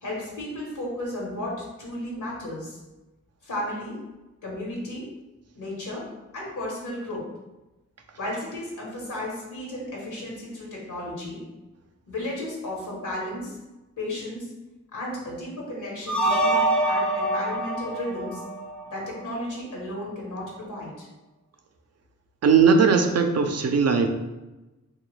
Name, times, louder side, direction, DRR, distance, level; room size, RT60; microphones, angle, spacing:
voice 1, 0.0-2.8 3.4-4.0 4.4-5.1 5.5-6.1 6.3-7.3 8.2-11.4 12.1-13.6 14.0-14.5 14.9-18.4 18.9-21.1, left 1 dB, 80° left, -3 dB, 1.0 m, -34 dB
sound 1, 16.1-19.2, right 1 dB, 5° left, 0.5 m, -25 dB
voice 2, 22.4-24.1, right 5 dB, 55° right, 5 dB, 0.4 m, -19 dB
2.9 x 2.3 x 3.1 m, 1.1 s
cardioid pair, 55°, 30 cm